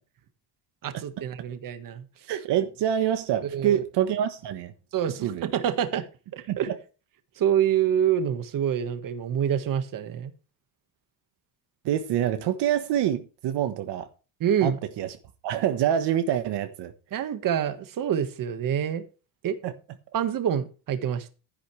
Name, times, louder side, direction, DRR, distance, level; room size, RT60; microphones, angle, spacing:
voice 1, 0.8-2.0 3.5-3.8 4.9-6.0 6.3-6.7 7.4-10.3 14.4-14.8 17.1-19.0 19.4-19.6 20.1-21.3, right 9 dB, 45° right, 1.7 m, -26 dB
voice 2, 2.3-4.7 5.2-5.5 6.5-6.8 11.8-14.1 14.6-14.7 15.0-15.2 15.4-16.9 19.6-19.7, right 10 dB, 65° right, 1.4 m, -26 dB
13.0 x 10.5 x 3.3 m
cardioid pair, 145°, 44 cm